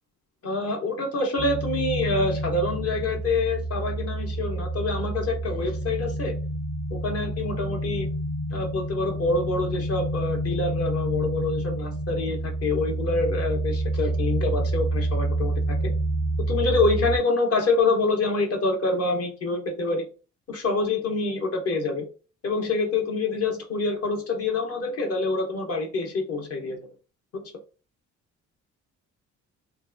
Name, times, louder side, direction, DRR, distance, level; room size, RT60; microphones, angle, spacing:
voice 1, 0.4-6.4 6.9-8.1 8.5-15.9 16.5-20.1 20.5-22.1 22.4-26.8 27.3-27.4, left 3 dB, 50° left, 3 dB, 0.8 m, -26 dB
sound 1, 1.4-17.2, right 1 dB, 20° left, 0.4 m, -28 dB
2.7 x 2.4 x 2.4 m, 0.35 s
cardioid pair, 90°, 30 cm